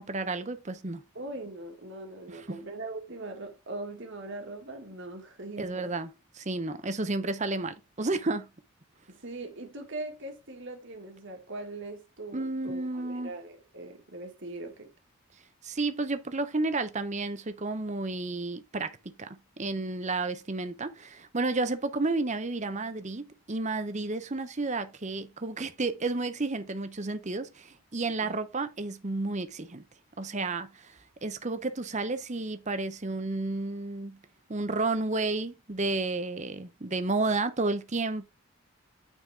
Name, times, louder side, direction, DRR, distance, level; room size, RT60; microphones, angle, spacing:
voice 1, 0.0-1.0 2.3-2.6 5.6-6.1 6.4-8.5 12.3-13.3 15.6-29.8 30.2-34.2 34.5-38.2, right 3 dB, 30° right, 0.8 m, -31 dB
voice 2, 1.2-5.9 9.1-14.9 28.2-28.4, right 2 dB, 55° right, 1.9 m, -41 dB
9.0 x 4.2 x 3.5 m
head